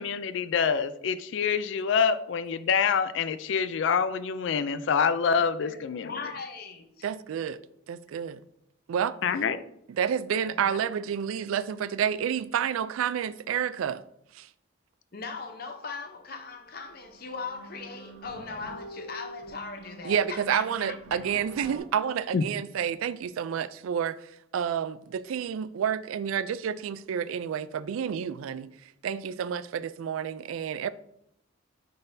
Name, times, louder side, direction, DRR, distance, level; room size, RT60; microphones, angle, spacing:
voice 1, 0.0-6.2 9.2-9.6 22.3-22.4, left 6 dB, 65° left, 0.3 m, -26 dB
voice 2, 6.0-7.1 10.5-10.9 15.1-21.2, left 4 dB, 45° left, 0.7 m, -39 dB
voice 3, 7.0-7.6 7.9-8.4 8.9-9.1 10.0-14.0 14.3-14.5 20.0-28.7 29.0-30.9, right 8 dB, 85° right, 0.3 m, -29 dB
sound 1, 16.4-16.5 16.8-21.8, right 1 dB, 65° right, 1.2 m, -46 dB
9.0 x 4.0 x 2.7 m
head